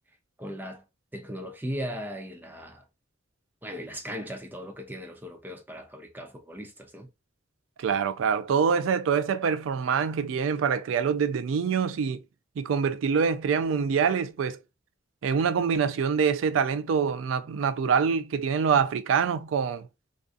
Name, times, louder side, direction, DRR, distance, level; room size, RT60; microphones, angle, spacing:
voice 1, 0.4-0.8 1.1-2.8 3.6-7.1, equal, 10° right, 0.5 m, -38 dB
voice 2, 7.8-12.2 12.6-14.6 15.2-19.9, right 6 dB, 85° right, 0.3 m, -25 dB
2.5 x 2.4 x 2.4 m
head